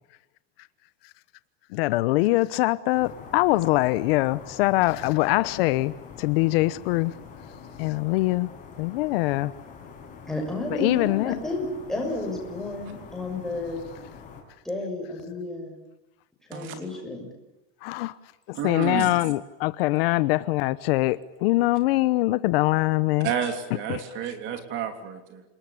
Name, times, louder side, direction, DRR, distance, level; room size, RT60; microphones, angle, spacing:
voice 1, 1.7-5.9 6.2-7.1 7.8-8.5 8.8-9.5 10.7-11.4 17.8-18.1 18.5-23.3 23.9-24.0, left 19 dB, 65° left, 1.0 m, -23 dB
sound 1, 2.9-14.4, left 6 dB, 25° left, 6.5 m, -45 dB
voice 2, 10.3-13.8 14.6-15.7 16.5-17.3, left 2 dB, ahead, 6.6 m, -32 dB
voice 3, 18.5-19.2 23.2-25.4, right 8 dB, 35° right, 3.3 m, -30 dB
28.5 x 20.5 x 8.7 m
supercardioid pair, 175°, 32 cm